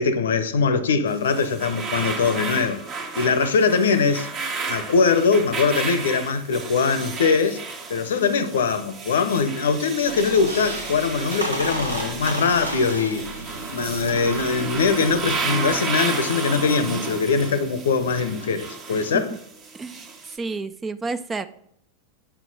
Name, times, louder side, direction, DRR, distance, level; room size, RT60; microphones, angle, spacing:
voice 1, 0.0-2.8 3.2-4.3 4.7-7.6 7.9-13.3 13.7-19.3, left 5 dB, 65° left, 0.7 m, -22 dB
sound 1, 1.1-20.4, right 4 dB, 35° right, 1.2 m, -32 dB
Squeak, 10.0-15.8, equal, 85° right, 1.0 m, -33 dB
voice 2, 19.7-21.5, right 3 dB, 15° right, 0.4 m, -31 dB
9.0 x 5.9 x 4.0 m
figure-of-eight pair, 90°, 0 cm